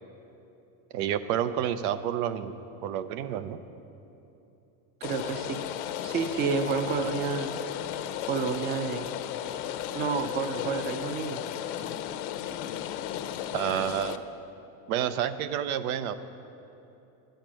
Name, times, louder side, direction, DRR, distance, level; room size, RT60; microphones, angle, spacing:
voice 1, 0.9-3.6 13.5-14.2 14.9-16.1, right 10 dB, 85° right, 12 dB, 0.8 m, -29 dB
Rain, 5.0-14.2, left 11 dB, 70° left, 0.7 m, -35 dB
voice 2, 5.0-5.6 6.0-7.5 8.3-9.1 9.9-11.4, right 5 dB, 25° right, 8 dB, 0.5 m, -30 dB
11.5 x 8.8 x 6.2 m, 3.0 s
cardioid pair, 155°, 42 cm